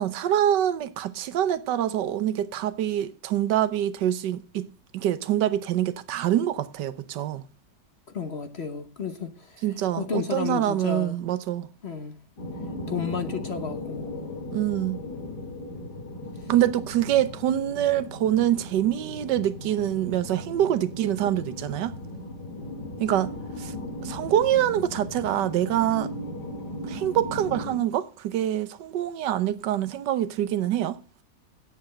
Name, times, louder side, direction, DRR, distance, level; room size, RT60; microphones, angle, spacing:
voice 1, 0.0-4.7 4.9-7.4 9.6-11.7 14.5-15.0 16.5-21.9 23.0-23.7 24.0-26.1 26.8-31.0, right 11 dB, 80° right, 1.4 m, -25 dB
voice 2, 8.1-11.2 11.8-12.2 12.9-14.1 16.4-16.5, left 6 dB, 40° left, 1.2 m, -32 dB
sound 1, 12.4-27.8, left 1 dB, 65° left, 3.1 m, -37 dB
9.5 x 7.8 x 7.5 m
omnidirectional pair, 1.9 m